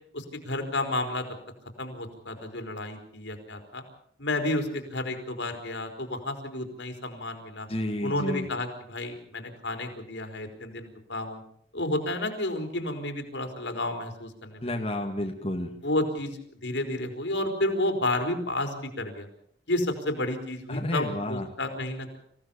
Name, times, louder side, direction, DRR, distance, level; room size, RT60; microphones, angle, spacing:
voice 1, 0.1-1.3 1.8-3.8 4.2-7.7 8.0-11.4 11.7-14.6 15.8-19.3 19.7-22.2, left 1 dB, 85° left, 5 dB, 4.1 m, -31 dB
voice 2, 7.7-8.5 14.6-15.7 20.7-21.5, left 1 dB, 30° left, 1 dB, 2.2 m, -30 dB
26.5 x 16.0 x 7.2 m, 0.67 s
head